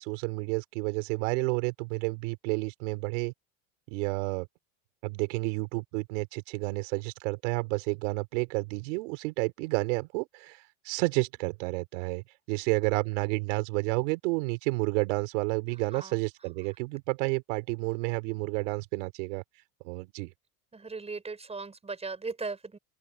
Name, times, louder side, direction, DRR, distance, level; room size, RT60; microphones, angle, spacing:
voice 1, 0.0-3.3 3.9-4.5 5.0-19.4 19.8-20.3, right 28 dB, 75° right, 4.1 m, -30 dB
voice 2, 20.7-22.8, right 4 dB, 15° right, 5.8 m, -38 dB
open air
supercardioid pair, 105°, 37 cm